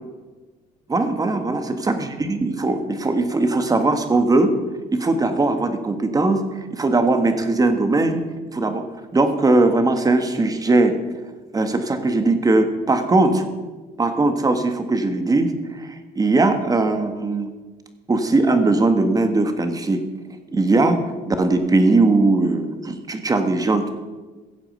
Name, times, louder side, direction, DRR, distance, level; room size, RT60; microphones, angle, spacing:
voice 1, 0.9-4.5 4.9-8.2 8.5-8.9 9.1-11.0 11.5-13.4 14.0-17.5 18.1-20.0 20.5-21.0 21.2-23.9, right 2 dB, 20° right, 7 dB, 1.6 m, -19 dB
16.0 x 7.4 x 6.6 m, 1.3 s
cardioid pair, 110°, 17 cm